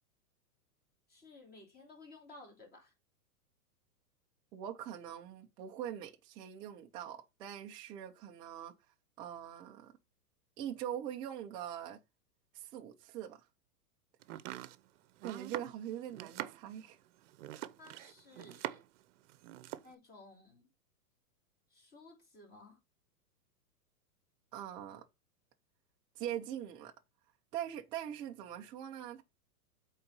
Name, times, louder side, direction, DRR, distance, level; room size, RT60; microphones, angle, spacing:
voice 1, 1.1-2.9 17.8-18.8 19.8-20.7 21.7-22.8, left 2 dB, 20° left, 3.3 m, -56 dB
voice 2, 4.5-8.7 9.2-9.9 10.6-12.0 12.5-13.4 14.6-14.7 15.2-17.0 24.5-25.1 26.2-26.9 27.5-29.2, right 10 dB, 10° right, 0.4 m, -42 dB
Domestic sounds home sounds, 14.2-19.0 19.3-19.9, right 14 dB, 50° right, 0.8 m, -44 dB
8.5 x 4.0 x 5.4 m
hypercardioid pair, 145°, 48 cm